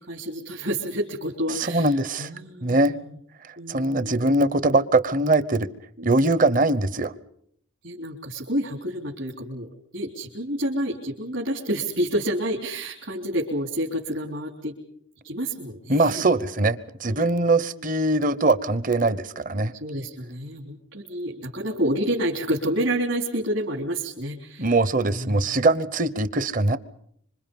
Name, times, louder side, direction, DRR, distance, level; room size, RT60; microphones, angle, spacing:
voice 1, 0.0-1.9 2.2-3.1 3.6-4.4 6.0-6.2 7.8-14.7 15.2-16.2 17.0-17.9 19.7-24.7 25.0-25.4, right 1 dB, 70° right, -1 dB, 3.5 m, -29 dB
voice 2, 1.5-2.3 2.6-3.0 3.7-5.7 6.0-7.1 15.9-19.7 24.6-26.8, right 2 dB, 40° right, 16 dB, 0.9 m, -22 dB
26.5 x 25.5 x 5.4 m, 0.68 s
head